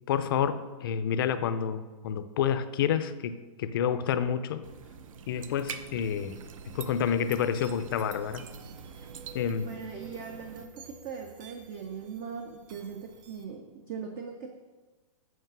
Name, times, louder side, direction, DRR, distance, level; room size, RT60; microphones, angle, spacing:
voice 1, 0.1-4.7 5.3-6.4 6.7-8.4 9.3-9.7, left 8 dB, 40° left, 12 dB, 0.5 m, -29 dB
sound 1, 4.6-10.6, right 7 dB, 70° right, 0.7 m, -45 dB
sound 2, 6.6-13.4, right 4 dB, 35° right, 0.9 m, -53 dB
voice 2, 9.6-14.6, right 6 dB, 20° right, 4 dB, 0.3 m, -40 dB
8.0 x 4.7 x 6.0 m, 1.2 s
hypercardioid pair, 170°, 18 cm